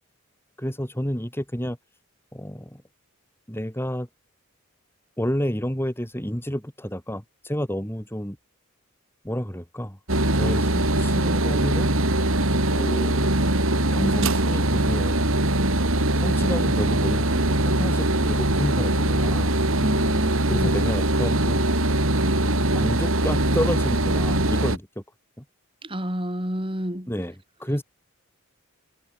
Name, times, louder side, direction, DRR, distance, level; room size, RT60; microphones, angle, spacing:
voice 1, 0.6-1.8 2.3-2.8 3.5-4.1 5.2-8.4 9.2-10.0 10.3-11.9 12.7-13.3 13.8-15.2 16.1-19.5 20.5-21.7 22.4-25.0 25.4-25.5 27.1-27.8, equal, 10° left, 6.0 m, -30 dB
sound 1, 10.1-24.8, right 1 dB, 70° right, 5.2 m, -22 dB
voice 2, 19.8-20.7 25.8-27.1, equal, 25° right, 7.7 m, -29 dB
head